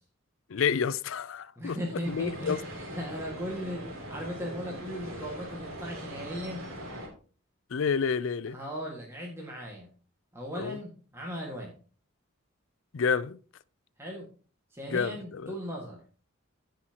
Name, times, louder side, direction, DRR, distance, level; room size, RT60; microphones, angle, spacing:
voice 1, 0.5-1.8 2.1-2.6 7.7-8.6 10.5-10.8 12.9-13.4 14.9-15.5, left 6 dB, 70° left, 0.5 m, -29 dB
voice 2, 1.6-2.5 3.0-6.6 8.5-9.9 10.3-11.7 14.0-14.3 14.7-16.0, equal, 10° right, 1.8 m, -37 dB
sound 1, 2.0-7.1, equal, 85° right, 3.1 m, -41 dB
16.0 x 5.7 x 2.9 m
head